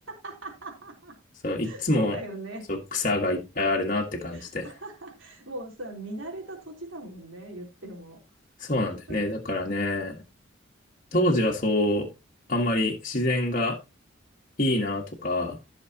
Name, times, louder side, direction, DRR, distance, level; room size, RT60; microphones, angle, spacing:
voice 1, 0.1-1.1 1.6-2.6 4.3-8.2 9.1-9.2, right 2 dB, 90° right, 0 dB, 3.7 m, -40 dB
voice 2, 1.4-2.2 2.7-4.7 8.6-10.2 11.1-12.1 12.5-13.8 14.6-15.6, left 1 dB, 45° left, -1 dB, 1.8 m, -26 dB
15.0 x 6.6 x 3.0 m, 0.25 s
head